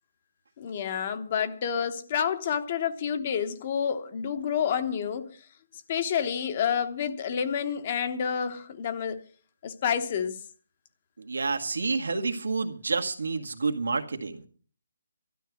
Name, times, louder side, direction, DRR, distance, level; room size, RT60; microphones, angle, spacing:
voice 1, 0.6-5.4 5.9-9.2 9.6-10.4, left 7 dB, 30° left, 1.0 m, -29 dB
voice 2, 11.2-14.4, right 4 dB, 85° right, 2.0 m, -29 dB
12.5 x 11.0 x 6.3 m
hypercardioid pair, 170°, 0 cm